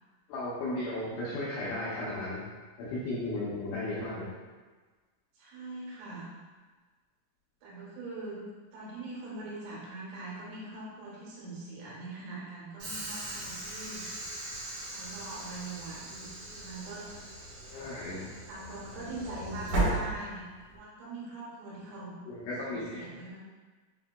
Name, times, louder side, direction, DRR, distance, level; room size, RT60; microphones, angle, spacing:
voice 1, 0.3-2.4 2.8-4.3 17.7-18.2 22.3-23.0, left 1 dB, 85° left, -9 dB, 2.4 m, -35 dB
voice 2, 5.4-6.3 7.6-8.4 8.7-14.0 14.8-17.1 17.7-22.2 22.6-23.4, right 2 dB, 80° right, -7 dB, 3.7 m, -42 dB
Train / Sliding door, 12.8-20.8, right 2 dB, 65° right, 2.3 m, -37 dB
7.4 x 2.7 x 2.2 m, 1.4 s
omnidirectional pair, 5.9 m